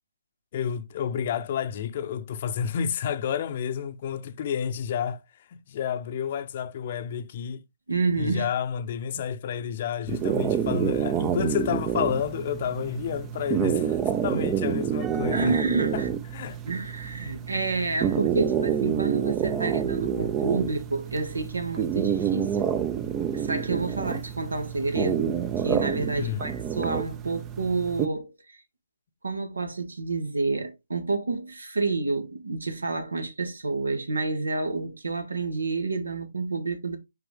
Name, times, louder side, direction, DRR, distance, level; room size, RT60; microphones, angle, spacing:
voice 1, 0.5-5.2 5.5-7.6 8.2-16.1 16.3-16.6 26.2-26.5, left 8 dB, 40° left, 0.8 m, -30 dB
voice 2, 7.9-8.5 9.1-9.2 15.3-16.1 16.7-22.8 23.3-28.6 29.2-37.0, right 3 dB, 85° right, 2.1 m, -29 dB
sound 1, 10.1-28.1, right 8 dB, 15° right, 0.6 m, -28 dB
5.8 x 5.2 x 3.5 m
hypercardioid pair, 150°, 0 cm